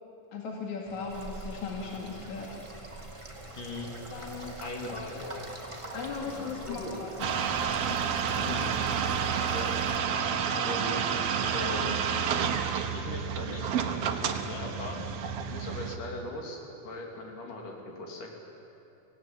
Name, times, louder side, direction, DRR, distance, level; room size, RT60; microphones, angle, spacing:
voice 1, 0.3-2.5 4.1-4.6 5.9-7.1 7.9-8.0, left 5 dB, 65° left, 0 dB, 3.5 m, -37 dB
sound 1, 0.8-10.2, left 1 dB, 15° left, 1.5 m, -52 dB
sound 2, 1.1-10.0, right 2 dB, 10° right, 1.6 m, -44 dB
voice 2, 3.5-3.9 4.6-5.5 5.8-6.9 8.3-8.7 9.1-9.2 9.5-9.7 10.5-11.0 11.5-12.0 12.9-15.0 15.5-18.3, left 2 dB, 80° left, 0 dB, 4.8 m, -39 dB
sound 3, 7.2-16.0, right 7 dB, 60° right, 2.0 m, -30 dB
25.0 x 18.0 x 9.9 m, 2.8 s
omnidirectional pair, 3.6 m